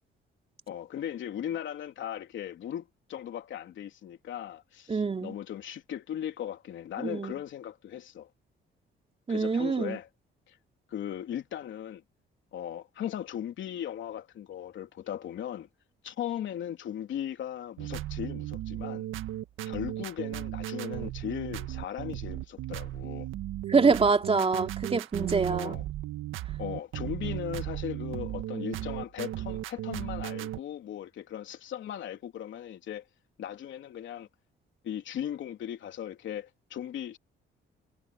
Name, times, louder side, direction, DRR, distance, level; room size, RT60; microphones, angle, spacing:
voice 1, 0.7-8.3 9.3-10.1 10.5-10.6 10.9-12.0 12.5-15.7 16.0-19.0 19.6-23.3 25.5-25.8 26.6-33.0 33.4-34.3 34.8-37.2, left 10 dB, 70° left, 3.4 m, -38 dB
voice 2, 4.9-5.3 7.0-7.3 9.3-10.0 23.7-25.8, right 4 dB, 30° right, 2.9 m, -25 dB
sound 1, 17.8-30.6, right 13 dB, 85° right, 1.6 m, -36 dB
cardioid pair, 90°, 20 cm